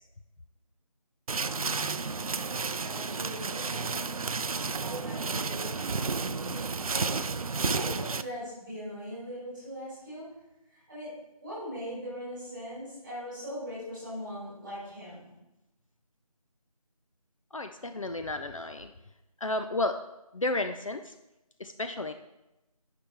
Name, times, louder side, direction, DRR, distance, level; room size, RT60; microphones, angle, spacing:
sound 1, 1.3-8.2, right 4 dB, 65° right, 0.4 m, -32 dB
voice 1, 2.5-6.6 6.9-7.1 7.7-10.3 10.7-11.1 11.4-15.3, equal, 5° right, -10 dB, 3.0 m, -41 dB
voice 2, 17.5-18.9 19.4-20.0 20.3-21.1 21.6-22.1, left 2 dB, 55° left, 7 dB, 0.5 m, -32 dB
8.4 x 5.7 x 3.4 m, 0.95 s
figure-of-eight pair, 175°, 20 cm